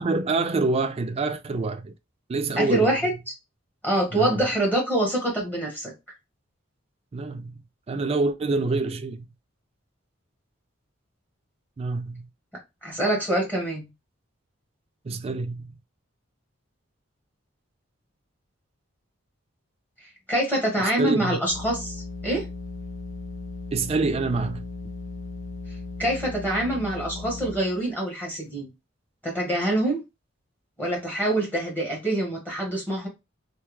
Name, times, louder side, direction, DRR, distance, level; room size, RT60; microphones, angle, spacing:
voice 1, 0.0-1.9 2.3-3.1 4.1-4.4 7.1-7.5 7.9-9.3 11.8-12.3 15.0-15.7 20.8-21.4 23.7-24.6, right 3 dB, 30° right, 0.3 m, -26 dB
voice 2, 2.6-3.1 3.8-5.9 12.8-13.9 20.3-22.4 26.0-28.7 29.2-30.0 30.8-33.1, right 1 dB, 10° left, 1.1 m, -25 dB
sound 1, 21.5-27.9, left 3 dB, 85° left, 0.6 m, -37 dB
3.3 x 2.2 x 3.1 m
head